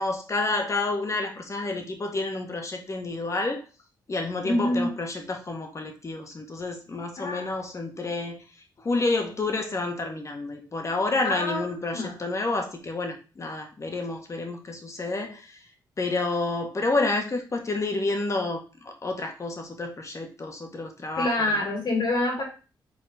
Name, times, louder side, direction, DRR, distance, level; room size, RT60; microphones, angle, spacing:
voice 1, 0.0-3.6 4.1-8.4 8.8-15.6 16.0-21.5, left 3 dB, 40° left, 3 dB, 1.8 m, -29 dB
voice 2, 4.4-4.9 7.2-7.5 11.2-11.6 11.9-12.2 21.1-22.4, left 1 dB, 65° left, -1 dB, 3.4 m, -26 dB
5.6 x 4.2 x 5.2 m, 0.34 s
cardioid pair, 85°, 8 cm